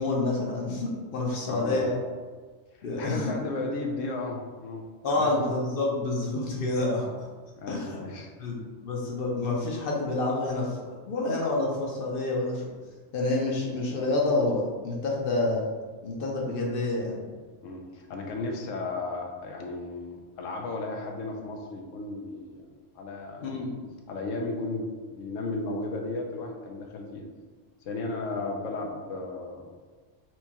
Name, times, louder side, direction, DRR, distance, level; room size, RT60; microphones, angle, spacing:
voice 1, 0.0-1.9 2.8-3.3 5.0-7.3 7.7-8.0 8.4-12.7 13.1-15.7 16.0-17.2 23.4-23.8, left 2 dB, 55° left, -2 dB, 0.7 m, -28 dB
voice 2, 1.5-1.9 2.8-5.4 7.6-8.3 17.6-22.7 22.9-23.7 24.1-27.3 27.9-29.7, left 3 dB, 85° left, 2 dB, 1.0 m, -34 dB
4.4 x 2.2 x 2.8 m, 1.4 s
omnidirectional pair, 1.3 m